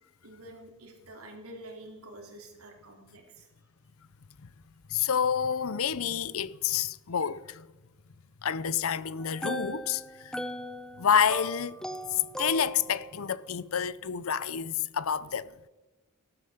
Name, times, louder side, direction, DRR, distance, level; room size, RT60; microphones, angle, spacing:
voice 1, 0.2-3.5, right 1 dB, 80° right, 3.6 m, -48 dB
voice 2, 4.9-7.7 8.4-10.4 11.0-11.8 12.1-15.5, left 7 dB, 75° left, 0.6 m, -28 dB
sound 1, 9.2-13.2, right 1 dB, 5° left, 0.7 m, -39 dB
16.0 x 12.5 x 6.7 m
head